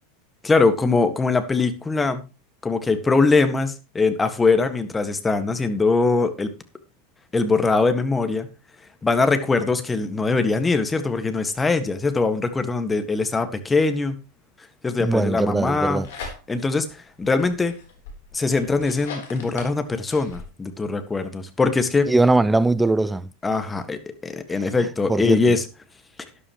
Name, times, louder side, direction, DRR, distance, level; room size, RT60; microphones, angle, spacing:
voice 1, 0.4-2.2 2.6-6.5 7.3-8.5 9.0-14.2 14.8-16.1 16.5-17.7 18.3-22.1 23.4-25.6, left 3 dB, 15° left, 1.8 m, -22 dB
voice 2, 15.0-16.1 22.1-23.3 25.1-25.4, right 2 dB, 10° right, 0.6 m, -20 dB
sound 1, 15.7-16.8 17.2-20.5, left 4 dB, 70° left, 3.9 m, -39 dB
13.0 x 11.0 x 3.1 m
hypercardioid pair, 90°, 0 cm